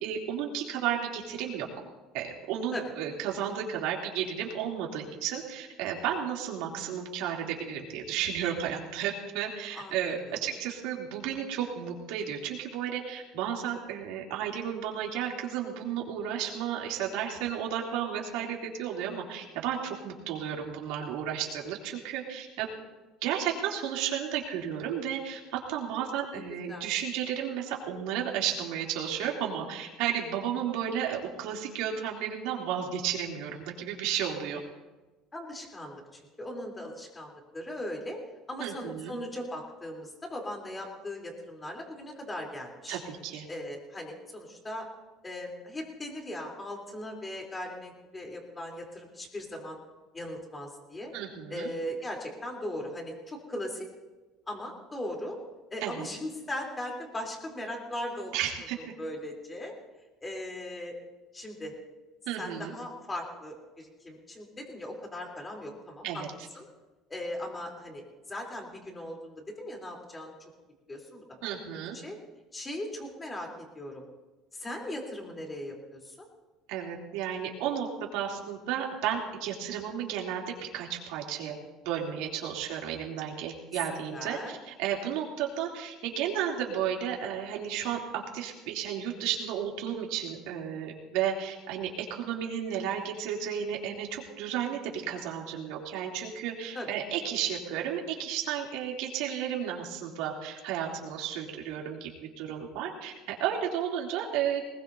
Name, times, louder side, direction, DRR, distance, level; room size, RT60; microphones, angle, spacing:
voice 1, 0.0-1.7 2.1-22.7 23.2-34.6 38.6-39.1 42.9-43.4 51.1-51.7 55.8-56.1 58.3-58.8 62.3-62.7 66.0-66.3 71.4-72.0 76.7-81.5 81.8-102.1 102.4-104.6, right 9 dB, 80° right, -1 dB, 3.1 m, -33 dB
voice 2, 9.7-10.4 26.3-26.4 26.7-26.9 35.3-38.2 38.5-43.0 43.5-44.9 45.2-49.8 50.1-51.1 51.5-53.9 54.5-55.4 55.7-58.3 59.0-59.7 60.2-61.0 61.3-61.7 62.4-66.2 66.6-66.7 67.1-68.0 68.3-70.3 70.9-71.6 71.9-72.2 72.5-73.5 73.7-74.1 74.5-76.3 84.1-84.6 96.7-96.9, left 1 dB, 15° left, 0 dB, 3.5 m, -38 dB
20.0 x 20.0 x 2.8 m, 1.2 s
cardioid pair, 130°, 0 cm